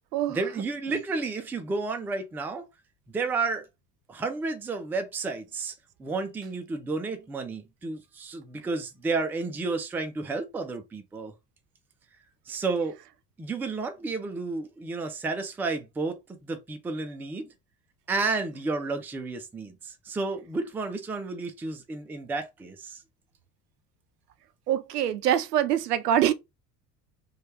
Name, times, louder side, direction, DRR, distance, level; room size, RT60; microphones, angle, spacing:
voice 1, 0.3-2.7 3.1-3.7 4.1-5.7 6.0-11.3 12.5-13.0 13.4-17.5 18.1-23.0, right 3 dB, 5° right, 0.3 m, -31 dB
voice 2, 24.7-26.3, right 10 dB, 75° right, 0.6 m, -24 dB
3.1 x 2.4 x 3.2 m
figure-of-eight pair, 65°, 48 cm